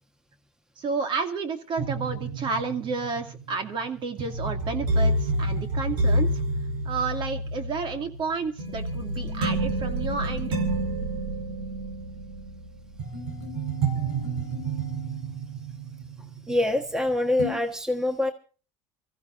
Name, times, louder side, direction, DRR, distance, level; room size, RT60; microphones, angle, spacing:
voice 1, 0.8-6.3 6.9-10.6, right 4 dB, 45° right, 6 dB, 2.4 m, -31 dB
sound 1, 1.8-17.0 17.4-17.5, right 2 dB, 85° right, 4.9 m, -29 dB
voice 2, 16.5-18.3, left 1 dB, 5° right, 6 dB, 1.4 m, -25 dB
25.0 x 15.0 x 2.6 m, 0.37 s
cardioid pair, 115°, 11 cm